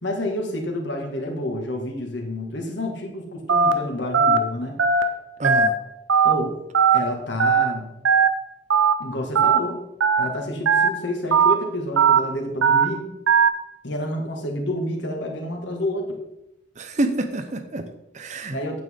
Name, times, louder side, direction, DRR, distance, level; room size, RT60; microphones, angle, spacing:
voice 1, 0.0-4.8 6.2-6.6 6.9-7.9 9.0-9.8 10.2-13.1 13.8-16.2 18.5-18.8, left 1 dB, 65° left, 1 dB, 1.9 m, -29 dB
Telephone, 3.5-3.7 4.1-4.4 4.8-5.0 5.4-5.7 6.1-6.3 6.7-7.0 7.4-7.6 8.1-8.3 8.7-8.9 9.4-9.6 10.0-10.2 10.7-10.9 11.3-11.5 12.0-12.2 12.6-12.8 13.3-13.5, right 6 dB, 85° right, 0.8 m, -17 dB
voice 2, 5.4-5.8 16.8-18.6, right 2 dB, 35° right, 8 dB, 0.7 m, -27 dB
8.9 x 8.4 x 3.7 m, 0.83 s
head